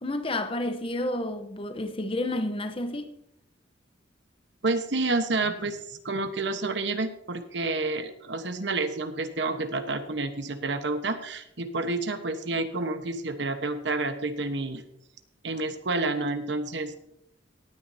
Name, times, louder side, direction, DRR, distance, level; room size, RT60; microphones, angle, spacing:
voice 1, 0.0-3.1, left 1 dB, 30° left, 0.9 m, -30 dB
voice 2, 4.6-14.8 15.4-16.9, right 3 dB, 70° right, 1.2 m, -29 dB
18.0 x 9.3 x 2.8 m
head